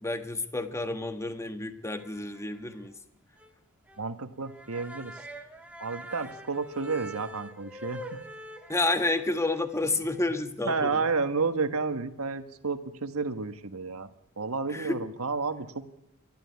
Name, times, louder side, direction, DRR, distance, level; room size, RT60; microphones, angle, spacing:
voice 1, 0.0-2.9 8.7-11.0 14.7-15.0, left 2 dB, 15° left, 8 dB, 1.5 m, -30 dB
sound 1, 2.0-2.6 2.9-3.0 3.4-3.5 3.9-4.0 4.4-10.4, equal, 5° right, 2.0 m, -45 dB
voice 2, 4.0-5.2 5.8-8.2 10.6-14.1 14.4-15.8, right 4 dB, 70° right, 8 dB, 1.5 m, -31 dB
28.0 x 12.5 x 9.6 m, 0.86 s
head